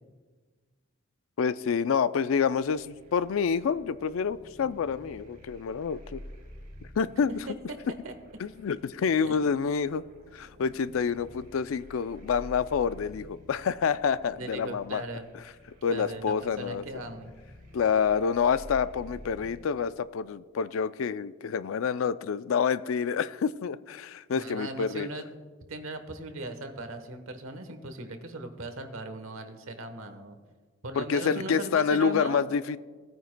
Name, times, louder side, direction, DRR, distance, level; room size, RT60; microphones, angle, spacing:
voice 1, 1.4-6.2 7.0-7.3 8.4-10.0 10.3-15.0 15.8-16.8 17.7-25.1 31.0-32.8, left 6 dB, 75° left, 15 dB, 0.4 m, -28 dB
sound 1, 2.3-19.6, equal, 45° right, 2.8 m, -50 dB
voice 2, 14.3-15.3 15.9-17.3 24.3-25.2 25.7-30.4 30.8-32.4, right 2 dB, 80° right, 8 dB, 1.1 m, -38 dB
18.0 x 9.1 x 2.2 m, 1.4 s
head